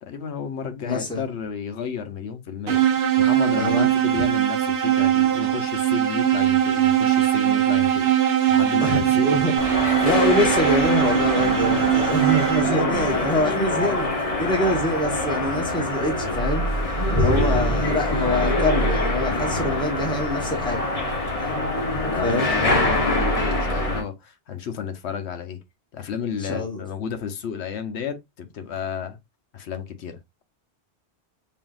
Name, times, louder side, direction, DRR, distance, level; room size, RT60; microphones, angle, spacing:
voice 1, 0.0-2.8 3.2-9.4 12.6-13.0 13.8-14.0 22.0-25.6 25.9-29.2 29.5-30.2, left 7 dB, 80° left, 1.0 m, -32 dB
voice 2, 0.8-1.2 3.5-3.9 8.8-9.6 10.0-14.1 14.4-20.9 21.4-21.5 22.2-22.5 26.4-26.8, left 1 dB, 5° left, 1.0 m, -25 dB
sound 1, 2.7-13.0, right 11 dB, 70° right, 0.9 m, -21 dB
sound 2, 9.6-24.0, left 1 dB, 35° left, 0.9 m, -24 dB
5.4 x 2.5 x 2.4 m
omnidirectional pair, 1.1 m